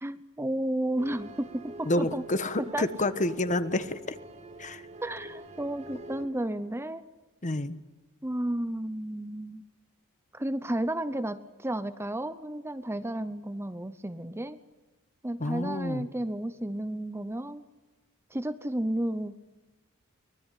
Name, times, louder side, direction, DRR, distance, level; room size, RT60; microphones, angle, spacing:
voice 1, 0.0-2.2 2.6-2.9 5.0-7.0 8.2-9.6 10.3-14.6 15.2-17.6 18.3-19.4, right 1 dB, 10° right, 12 dB, 0.8 m, -32 dB
sound 1, 1.0-6.3, equal, 30° right, 2.5 m, -45 dB
voice 2, 1.8-4.2 4.6-4.8 7.4-7.8 15.4-16.1, left 1 dB, 35° left, 12 dB, 1.3 m, -29 dB
24.0 x 19.5 x 10.0 m, 1.2 s
head